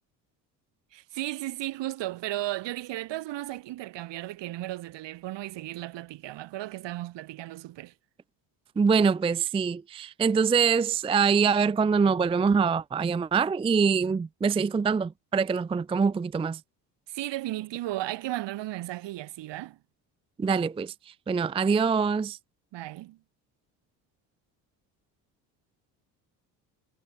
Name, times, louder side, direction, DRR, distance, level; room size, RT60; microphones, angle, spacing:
voice 1, 0.9-7.9 17.1-19.8 22.7-23.2, right 16 dB, 65° right, 4.1 m, -35 dB
voice 2, 8.8-16.6 20.4-22.4, right 5 dB, 15° right, 0.5 m, -24 dB
hypercardioid pair, 65°, 46 cm